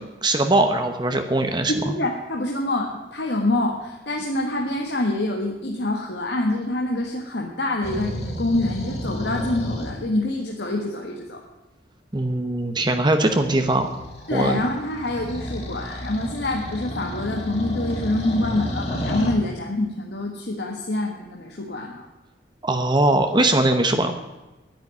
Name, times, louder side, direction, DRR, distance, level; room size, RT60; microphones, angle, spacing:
voice 1, 0.2-1.7 12.1-13.9 14.3-14.6 22.6-24.2, right 2 dB, 25° right, 6 dB, 1.0 m, -20 dB
voice 2, 1.7-11.4 14.3-22.0, left 1 dB, 65° left, 0 dB, 1.7 m, -26 dB
sound 1, 7.8-10.0 13.3-19.4, equal, 35° left, 2.8 m, -31 dB
10.5 x 10.0 x 9.6 m, 1.1 s
head